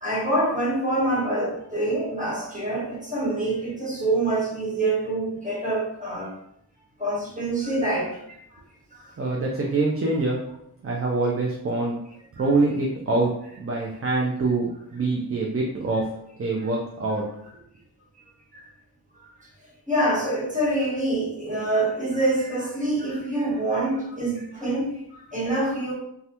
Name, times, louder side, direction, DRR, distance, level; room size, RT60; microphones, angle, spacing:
voice 1, 0.0-6.3 7.0-8.4 8.9-9.4 18.5-18.7 19.9-25.9, right 1 dB, 20° right, -6 dB, 1.4 m, -26 dB
voice 2, 9.2-10.4 10.8-12.0 12.4-13.3 13.6-16.0 16.4-17.2, right 3 dB, 40° right, -1 dB, 0.5 m, -24 dB
3.1 x 2.3 x 2.9 m, 0.75 s
wide cardioid pair, 65°, 38 cm